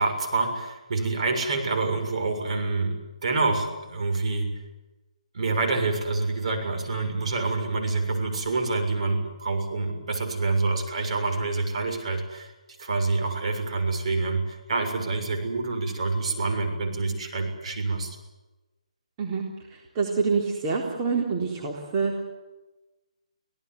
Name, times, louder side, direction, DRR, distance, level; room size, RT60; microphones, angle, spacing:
voice 1, 0.0-4.5 5.3-12.5 12.8-18.2, right 3 dB, 60° right, 4 dB, 6.7 m, -27 dB
voice 2, 19.7-22.2, right 4 dB, 25° right, -1 dB, 3.8 m, -26 dB
25.5 x 17.5 x 9.5 m, 1.1 s
figure-of-eight pair, 150°, 4 cm